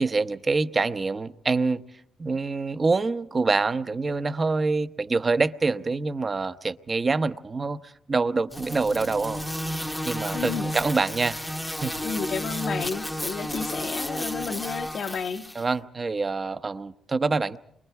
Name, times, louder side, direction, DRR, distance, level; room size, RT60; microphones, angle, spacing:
voice 1, 0.0-1.8 2.2-9.4 10.0-12.0 15.5-17.6, right 3 dB, 30° right, 0.9 m, -26 dB
sound 1, 8.5-15.6, equal, 5° left, 0.9 m, -32 dB
voice 2, 10.3-10.7 12.0-15.5, left 6 dB, 55° left, 1.1 m, -31 dB
29.5 x 23.5 x 4.7 m
cardioid pair, 90°, 0 cm